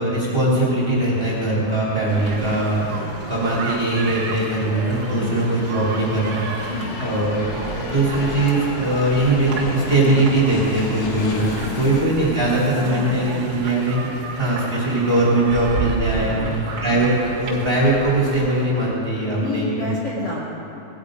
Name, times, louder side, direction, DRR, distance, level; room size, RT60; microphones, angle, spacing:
voice 1, 0.0-6.7 7.0-7.5 7.8-11.5 11.8-14.0 14.4-16.3 16.8-19.7, right 2 dB, 15° right, -6 dB, 2.6 m, -20 dB
sound 1, 0.7-12.0, left 3 dB, 80° left, 1.6 m, -35 dB
sound 2, 2.1-18.7, right 4 dB, 75° right, 1.3 m, -32 dB
voice 2, 12.8-13.5 13.8-14.2 16.1-17.0 19.3-20.4, left 2 dB, 50° left, -7 dB, 1.3 m, -30 dB
18.5 x 10.5 x 5.0 m, 2.8 s
omnidirectional pair, 5.2 m